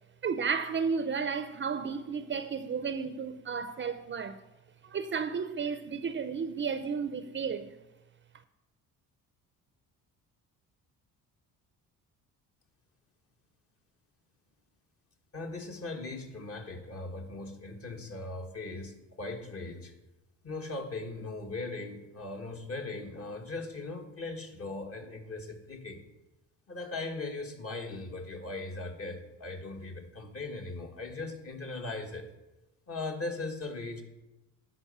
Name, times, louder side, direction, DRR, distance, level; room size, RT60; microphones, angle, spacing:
voice 1, 0.2-4.4 4.8-7.7, right 6 dB, 35° right, 0.6 m, -33 dB
voice 2, 15.3-19.9 20.4-26.0 26.7-32.3 32.9-34.0, left 3 dB, 40° left, 1.6 m, -39 dB
11.5 x 5.2 x 6.8 m
cardioid pair, 115°, 34 cm